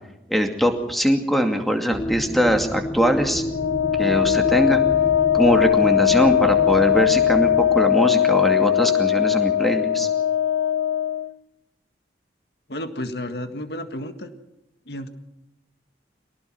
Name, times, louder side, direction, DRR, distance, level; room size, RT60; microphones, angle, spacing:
voice 1, 0.3-3.4 4.0-4.8 5.3-10.1, equal, ahead, 4 dB, 2.4 m, -21 dB
sound 1, 1.9-7.8, left 1 dB, 20° left, 0.8 m, -31 dB
Wind instrument woodwind instrument, 3.5-11.3, left 10 dB, 85° left, 0.8 m, -20 dB
voice 2, 12.7-14.3 14.9-15.1, left 1 dB, 60° left, 8 dB, 1.8 m, -32 dB
24.0 x 18.5 x 6.0 m, 0.94 s
head